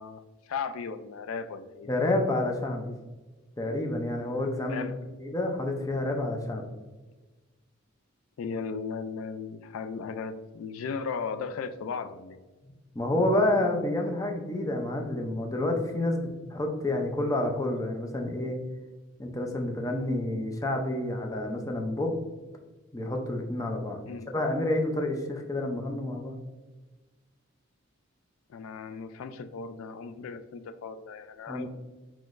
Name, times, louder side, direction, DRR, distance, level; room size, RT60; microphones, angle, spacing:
voice 1, 0.0-1.9 4.7-5.0 8.4-12.4 24.1-24.3 28.5-31.7, left 5 dB, 85° left, 10 dB, 0.3 m, -36 dB
voice 2, 1.9-2.9 3.6-4.8 5.2-6.7 12.9-18.6 19.2-22.1 22.9-24.0 24.3-26.4 31.5-31.7, left 1 dB, 15° left, 2 dB, 0.5 m, -29 dB
5.7 x 3.0 x 2.5 m, 1.2 s
head